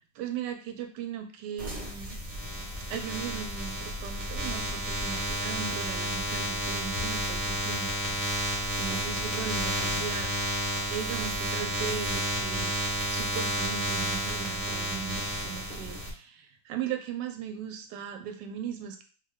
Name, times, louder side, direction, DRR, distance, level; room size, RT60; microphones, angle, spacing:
voice 1, 0.2-2.2 2.9-7.9 8.8-10.3 10.9-12.7 13.1-19.0, right 8 dB, 90° right, 6 dB, 1.2 m, -38 dB
sound 1, 1.6-16.1, equal, 30° right, 0.9 m, -31 dB
3.1 x 2.2 x 3.4 m, 0.39 s
omnidirectional pair, 1.8 m